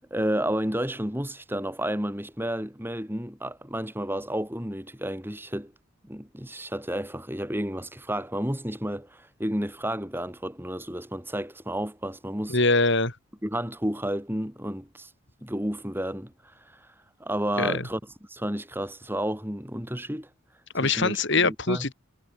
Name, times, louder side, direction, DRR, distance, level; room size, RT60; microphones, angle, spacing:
voice 1, 0.1-5.7 6.0-12.6 13.4-15.1 15.4-16.3 16.7-16.8 17.2-18.0 18.3-20.3 20.8-21.9, right 1 dB, 10° right, 4.8 m, -31 dB
voice 2, 12.5-13.1 17.6-17.8 20.7-21.9, left 3 dB, 55° left, 5.0 m, -23 dB
head